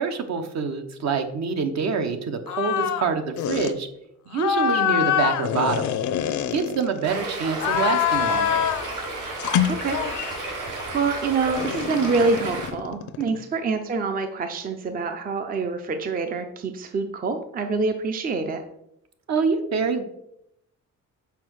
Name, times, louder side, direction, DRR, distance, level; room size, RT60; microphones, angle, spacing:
voice 1, 0.0-3.9 4.3-5.9 6.5-8.6 13.2-13.3 19.3-20.0, right 5 dB, 60° right, 7 dB, 0.9 m, -26 dB
sound 1, 2.5-3.1 3.4-3.7 4.3-7.1 7.5-8.9 9.4-10.5 11.6-13.4, left 10 dB, 65° left, 0.6 m, -25 dB
Stream, 7.0-12.7, right 2 dB, 75° right, 2.6 m, -32 dB
voice 2, 9.6-10.0 10.3-18.6, right 4 dB, 30° right, 7 dB, 0.5 m, -26 dB
5.8 x 4.6 x 6.2 m, 0.79 s
cardioid pair, 150°, 32 cm